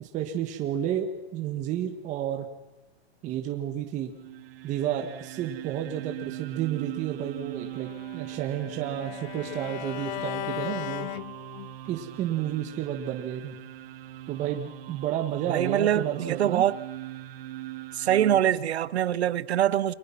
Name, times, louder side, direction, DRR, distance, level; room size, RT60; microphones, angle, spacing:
voice 1, 0.0-2.5 3.2-4.1 4.6-11.1 11.9-13.6 14.3-16.6, right 10 dB, 25° right, 1.7 m, -31 dB
sound 1, 4.1-18.4, right 15 dB, 65° right, 2.5 m, -41 dB
Bowed string instrument, 7.7-11.9, left 17 dB, 45° left, 0.9 m, -37 dB
voice 2, 15.5-16.8 17.9-19.9, right 11 dB, 80° right, 1.3 m, -24 dB
30.0 x 25.0 x 6.0 m
supercardioid pair, 160°, 32 cm